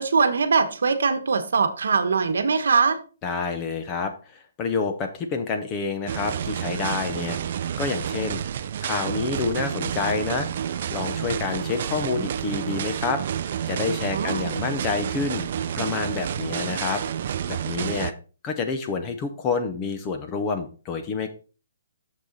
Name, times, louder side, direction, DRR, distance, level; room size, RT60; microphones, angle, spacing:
voice 1, 0.0-3.0 14.1-14.5, right 5 dB, 70° right, 9 dB, 1.1 m, -22 dB
voice 2, 3.2-8.4 8.8-10.5 10.9-13.2 13.7-15.5 15.8-18.1 18.4-21.3, left 4 dB, 15° left, 7 dB, 0.6 m, -28 dB
sound 1, 6.1-18.1, right 9 dB, 35° right, 0.3 m, -29 dB
6.8 x 6.5 x 3.9 m, 0.35 s
hypercardioid pair, 175°, 0 cm